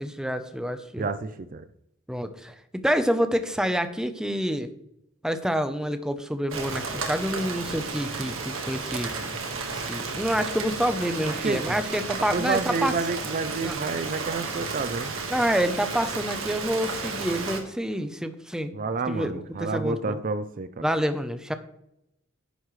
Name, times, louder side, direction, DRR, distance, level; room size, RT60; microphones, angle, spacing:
voice 1, 0.0-1.1 2.1-2.5 2.8-4.7 5.2-9.1 9.7-12.9 13.6-13.8 15.3-18.8 19.1-20.2 20.8-21.5, equal, 5° right, 9 dB, 0.7 m, -27 dB
voice 2, 1.0-1.6 11.4-11.8 12.3-15.1 18.7-20.8, right 4 dB, 40° right, 11 dB, 0.5 m, -29 dB
Rain, 6.5-17.6, right 4 dB, 80° right, 1.7 m, -33 dB
10.5 x 9.7 x 3.2 m, 0.80 s
head